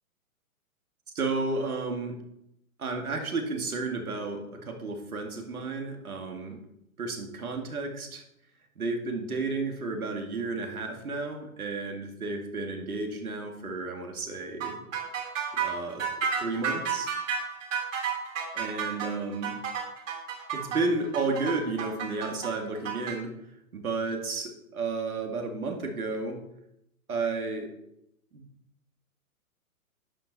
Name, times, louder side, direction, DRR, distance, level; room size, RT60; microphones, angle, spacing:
voice 1, 1.1-2.2 2.8-6.6 7.0-8.2 8.8-14.9 15.5-17.1 18.5-19.6 20.5-23.3 23.7-26.4 27.1-27.7 28.3-28.4, right 3 dB, 75° right, 4 dB, 2.4 m, -32 dB
sound 1, 14.6-23.2, right 6 dB, 60° right, 3.4 m, -31 dB
11.5 x 8.7 x 4.2 m, 0.81 s
hypercardioid pair, 125°, 43 cm